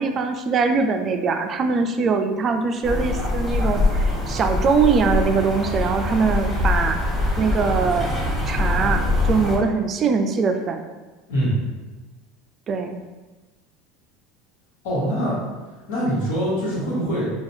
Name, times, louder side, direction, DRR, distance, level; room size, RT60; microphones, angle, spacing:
voice 1, 0.0-7.0 7.4-8.1 8.5-9.0 9.3-10.8 12.7-13.0, right 5 dB, 40° right, 6 dB, 0.3 m, -22 dB
sound 1, 2.8-9.6, left 2 dB, 5° left, 1.3 m, -23 dB
voice 2, 14.8-15.4 15.9-17.3, equal, 75° left, -7 dB, 1.3 m, -23 dB
4.1 x 2.3 x 2.6 m, 1.2 s
hypercardioid pair, 90°, 0 cm